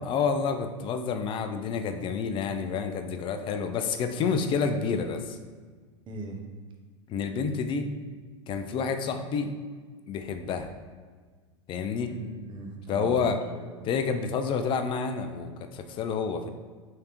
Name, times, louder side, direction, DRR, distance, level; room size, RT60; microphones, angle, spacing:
voice 1, 0.0-5.4 7.1-7.9 8.5-9.5 10.1-10.7 11.7-12.1 12.9-13.4 13.8-16.5, left 5 dB, 30° left, 7 dB, 0.4 m, -29 dB
voice 2, 6.1-6.4 12.1-13.9, right 2 dB, 30° right, 1 dB, 0.8 m, -40 dB
3.7 x 3.3 x 3.0 m, 1.5 s
hypercardioid pair, 100°, 16 cm